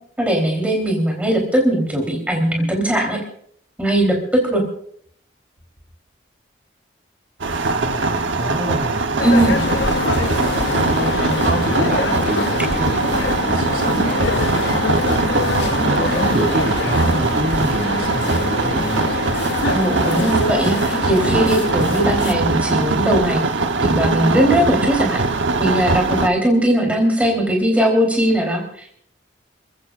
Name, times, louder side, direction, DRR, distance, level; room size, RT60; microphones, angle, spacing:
voice 1, 0.2-3.2 3.8-4.2 4.4-4.6 9.2-9.6 19.7-23.4 23.8-25.2 25.6-28.9, right 1 dB, 10° right, 0 dB, 3.5 m, -19 dB
sound 1, 7.4-26.3, right 3 dB, 85° right, 1.0 m, -21 dB
voice 2, 7.6-9.6 10.1-19.3, right 1 dB, 55° right, 1 dB, 4.4 m, -27 dB
sound 2, 9.2-22.3, left 4 dB, 65° left, 0.7 m, -25 dB
29.5 x 15.0 x 2.5 m, 0.62 s
head